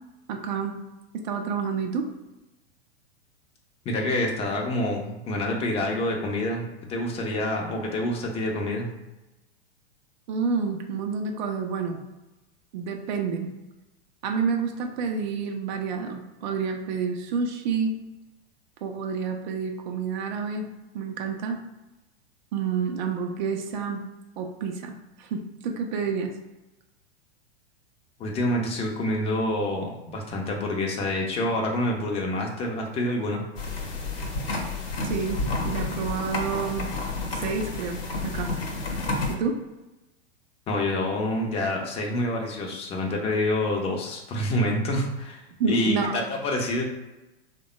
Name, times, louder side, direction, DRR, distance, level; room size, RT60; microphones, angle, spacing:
voice 1, 0.3-0.8 1.2-2.1 10.3-12.0 12.7-13.5 14.2-17.9 18.8-20.7 20.9-21.6 22.5-24.0 24.4-24.9 25.2-26.3 35.0-35.4 35.6-36.9 37.3-38.5 39.3-39.6 45.6-46.2, right 5 dB, 45° right, 3 dB, 0.6 m, -29 dB
voice 2, 3.8-8.9 28.2-33.4 40.7-45.4 45.7-46.8, left 1 dB, 20° left, 0 dB, 0.6 m, -27 dB
sound 1, 33.6-39.3, left 3 dB, 60° left, 0.9 m, -30 dB
3.4 x 2.2 x 4.0 m, 1.0 s
figure-of-eight pair, 100°, 32 cm